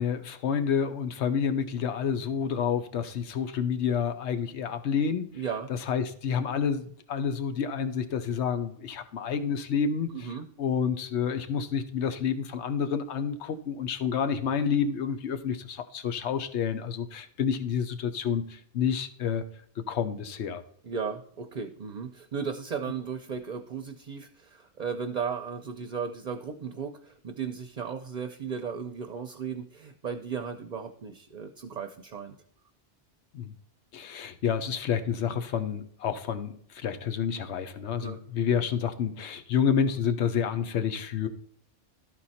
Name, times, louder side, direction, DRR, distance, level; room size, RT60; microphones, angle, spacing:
voice 1, 0.0-5.4 5.7-10.3 10.6-19.4 19.9-20.6 33.3-33.5 33.9-41.3, left 7 dB, 75° left, 10 dB, 1.1 m, -29 dB
voice 2, 5.3-5.7 10.1-10.5 20.8-32.4 38.0-38.2, right 6 dB, 45° right, 7 dB, 0.7 m, -35 dB
13.0 x 4.5 x 4.1 m, 0.64 s
omnidirectional pair, 1.2 m